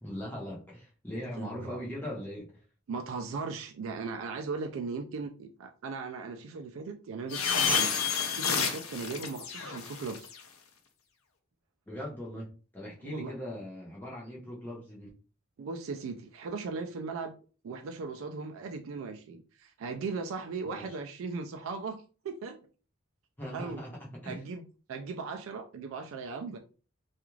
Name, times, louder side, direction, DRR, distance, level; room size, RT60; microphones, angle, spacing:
voice 1, 0.0-2.6 11.9-15.1 20.6-20.8 23.4-24.4, equal, 10° left, 0.9 m, -40 dB
voice 2, 1.4-1.8 2.9-10.3 13.0-13.3 15.6-17.3 17.6-22.6 23.5-23.8 24.3-24.6 24.9-26.6, right 4 dB, 70° right, 0.3 m, -38 dB
sound 1, 7.3-10.4, left 6 dB, 80° left, 0.5 m, -30 dB
2.4 x 2.3 x 3.1 m
head